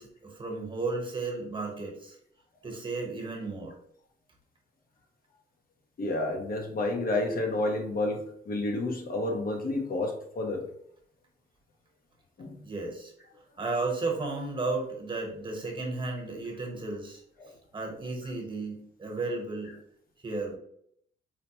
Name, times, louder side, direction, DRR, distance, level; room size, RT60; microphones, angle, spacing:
voice 1, 0.0-2.2 2.6-3.7 12.6-13.1 13.6-19.7 20.2-20.6, right 3 dB, 25° right, 1 dB, 1.1 m, -34 dB
voice 2, 6.0-10.6 12.4-12.6 17.4-17.5 18.2-18.3, left 2 dB, 50° left, 2 dB, 0.7 m, -30 dB
4.2 x 2.1 x 2.9 m, 0.69 s
cardioid pair, 90°, 20 cm